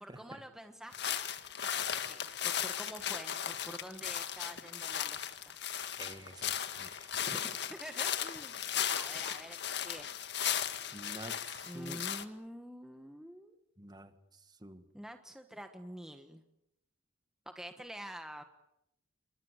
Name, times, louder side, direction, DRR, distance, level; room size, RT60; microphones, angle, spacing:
voice 1, 0.0-1.3 1.6-5.6 7.3-7.4 7.7-8.5 8.9-10.1 11.6-13.5 14.9-16.4 17.4-18.4, equal, 5° right, 6 dB, 1.3 m, -47 dB
sound 1, 0.9-12.3, left 9 dB, 55° left, 1.8 m, -36 dB
voice 2, 6.0-7.4 8.6-8.9 10.9-12.1 13.8-14.1 14.6-14.9, right 1 dB, 20° right, 10 dB, 1.7 m, -49 dB
29.0 x 23.5 x 8.2 m, 0.83 s
head